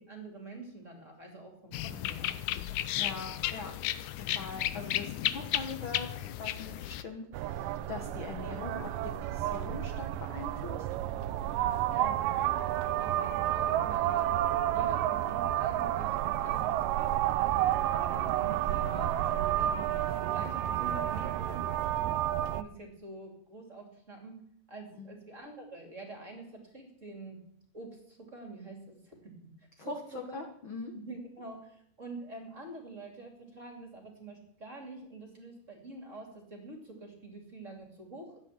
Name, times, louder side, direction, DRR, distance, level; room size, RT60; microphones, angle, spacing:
voice 1, 0.1-2.4 11.9-17.8 18.1-21.7 22.0-22.2 22.5-24.3 24.7-27.4 27.7-29.3 29.6-30.4 30.9-38.4, right 2 dB, 25° right, 2 dB, 2.5 m, -46 dB
sound 1, 1.7-7.0, left 13 dB, 75° left, 1.9 m, -34 dB
voice 2, 1.9-2.3 3.0-3.7 4.1-10.9 25.0-25.1 29.8-30.9, left 4 dB, 60° left, 4 dB, 1.3 m, -42 dB
sound 2, 7.3-22.6, right 12 dB, 80° right, 2.3 m, -30 dB
14.5 x 9.6 x 7.3 m, 0.75 s
omnidirectional pair, 4.0 m